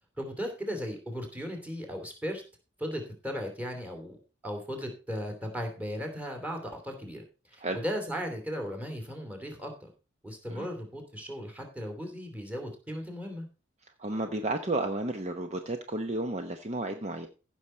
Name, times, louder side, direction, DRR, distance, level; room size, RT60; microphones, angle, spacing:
voice 1, 0.2-2.4 2.8-4.2 4.4-9.9 10.2-13.5, equal, 10° right, 4 dB, 2.7 m, -36 dB
voice 2, 14.0-17.3, right 2 dB, 35° right, 6 dB, 0.8 m, -32 dB
15.5 x 6.3 x 4.3 m, 0.34 s
head